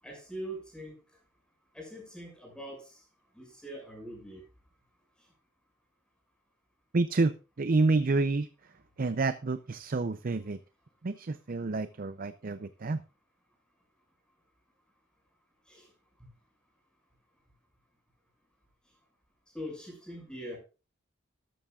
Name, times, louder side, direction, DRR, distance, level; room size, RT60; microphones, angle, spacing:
voice 1, 0.0-1.0 1.7-3.0 3.3-4.5 5.2-5.3 15.7-15.9 19.5-20.6, equal, 5° left, 6.4 m, -42 dB
voice 2, 6.9-7.3 7.6-8.5 9.0-10.6 11.0-13.0, right 3 dB, 45° right, 0.5 m, -28 dB
13.0 x 13.0 x 2.4 m
head